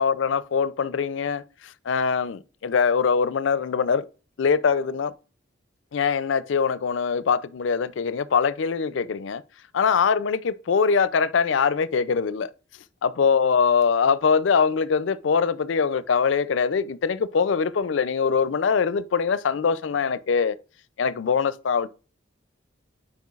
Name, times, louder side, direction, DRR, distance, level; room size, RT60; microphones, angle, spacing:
voice 1, 0.0-4.1 4.4-5.1 5.9-9.4 9.7-12.5 13.0-20.6 21.0-21.9, left 6 dB, 75° left, 0.4 m, -23 dB
9.5 x 4.4 x 2.4 m
head